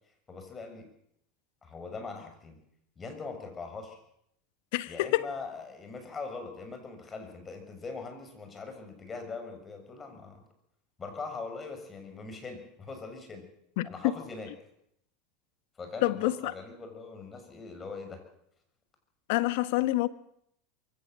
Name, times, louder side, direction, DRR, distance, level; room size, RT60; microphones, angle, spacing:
voice 1, 0.3-0.9 1.6-2.6 3.0-4.0 4.9-10.4 11.0-13.5 13.8-14.5 15.8-18.2, left 4 dB, 25° left, 6.6 m, -41 dB
voice 2, 4.7-5.3 13.8-14.1 16.0-16.5 19.3-20.1, left 18 dB, 70° left, 1.3 m, -27 dB
23.0 x 17.0 x 7.8 m
supercardioid pair, 105°, 0 cm